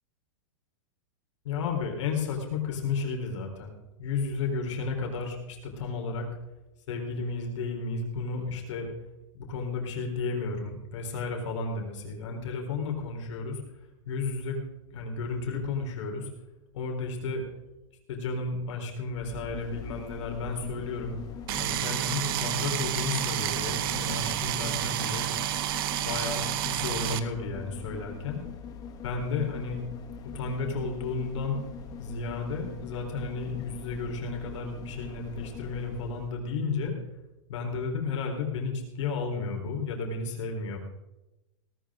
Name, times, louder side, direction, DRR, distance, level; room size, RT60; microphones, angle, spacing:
voice 1, 1.4-6.3 6.9-8.9 9.3-13.6 14.1-14.6 14.9-16.3 16.7-17.4 18.1-21.2 21.6-25.3 26.0-28.4 29.0-29.8 30.2-31.6 32.0-36.9 37.5-40.8, left 4 dB, 60° left, 2 dB, 4.3 m, -33 dB
sound 1, 19.1-36.4 36.8-36.9, left 6 dB, 20° left, 1.2 m, -42 dB
sound 2, 21.5-27.2, right 14 dB, 40° right, 0.9 m, -30 dB
18.5 x 12.5 x 3.8 m, 0.99 s
supercardioid pair, 165°, 17 cm